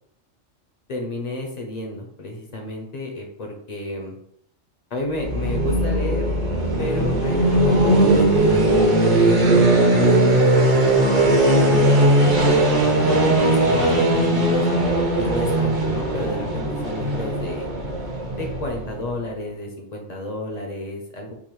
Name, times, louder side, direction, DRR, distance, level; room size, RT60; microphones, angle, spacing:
voice 1, 0.9-4.2 4.9-6.3 6.8-8.8 9.3-10.9 11.1-12.4 12.8-14.7 15.2-17.7 18.3-21.3, left 2 dB, 50° left, 1 dB, 0.5 m, -31 dB
sound 1, 5.1-19.0, right 1 dB, 45° right, 0.7 m, -19 dB
sound 2, 9.1-14.2, right 2 dB, 80° right, 1.1 m, -31 dB
3.7 x 2.5 x 3.0 m, 0.71 s
omnidirectional pair, 1.3 m